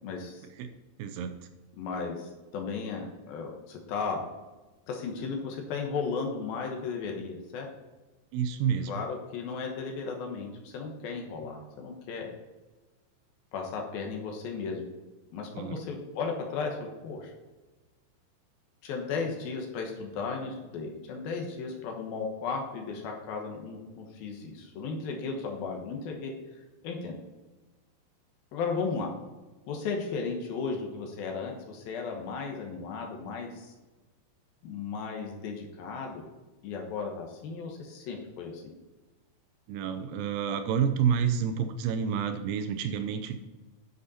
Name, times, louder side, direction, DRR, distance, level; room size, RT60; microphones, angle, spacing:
voice 1, 0.0-0.5 1.7-4.2 4.9-7.7 8.9-12.3 13.5-14.9 15.3-17.3 18.8-26.3 26.8-27.2 28.5-29.1 29.7-33.7 34.6-36.2 36.6-38.6, left 4 dB, 70° left, 1 dB, 2.8 m, -35 dB
voice 2, 1.0-1.4 8.3-8.9 15.5-15.8 39.7-43.4, right 7 dB, 80° right, 8 dB, 2.6 m, -29 dB
10.5 x 7.2 x 4.2 m, 1.2 s
omnidirectional pair, 4.8 m